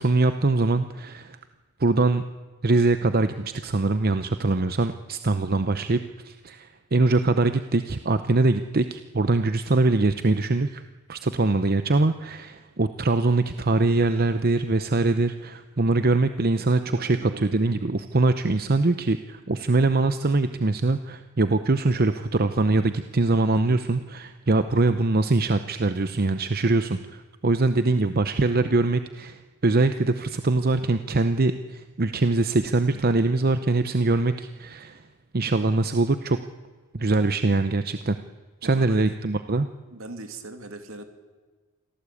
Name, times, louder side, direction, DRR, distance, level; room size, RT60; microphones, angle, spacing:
voice 1, 0.0-1.4 1.8-2.2 2.6-6.0 6.2-10.8 11.1-35.0 35.3-36.4 36.9-38.2 38.6-39.7, right 2 dB, 45° right, 10 dB, 0.8 m, -23 dB
voice 2, 17.0-17.6 23.5-23.8 38.6-39.2 39.9-41.0, right 2 dB, 65° right, 7 dB, 2.7 m, -40 dB
25.5 x 17.0 x 8.5 m, 1.4 s
head